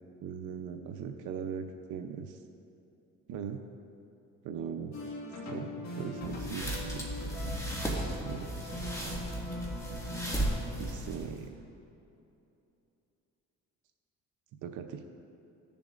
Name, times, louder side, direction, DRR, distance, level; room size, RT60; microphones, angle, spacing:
voice 1, 0.2-2.4 3.3-3.6 4.4-4.9 5.4-7.1 8.2-8.7 10.8-11.6 14.6-15.0, right 7 dB, 80° right, 4 dB, 0.7 m, -39 dB
sound 1, 4.9-10.6, left 2 dB, 65° left, 1.8 m, -41 dB
sound 2, 6.2-11.4, right 1 dB, 10° left, 2.0 m, -36 dB
16.5 x 6.9 x 2.5 m, 2.8 s
cardioid pair, 90°, 30 cm